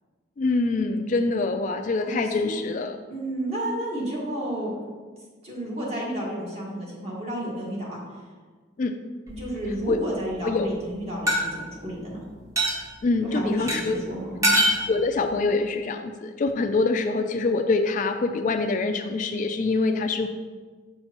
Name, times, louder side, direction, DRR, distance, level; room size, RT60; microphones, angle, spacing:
voice 1, 0.4-3.0 8.8-8.9 9.9-10.0 10.4-10.7 13.0-14.0 14.9-20.3, left 3 dB, 40° left, 7 dB, 0.3 m, -25 dB
voice 2, 2.0-2.5 3.1-4.7 5.4-8.0 9.3-12.3 13.2-14.6, right 1 dB, 35° right, -5 dB, 1.7 m, -31 dB
sound 1, 9.3-9.9 11.3-11.4 12.6-12.8 13.7-13.8 14.4-14.8, equal, 15° right, 0.9 m, -22 dB
6.5 x 6.3 x 2.9 m, 1.4 s
head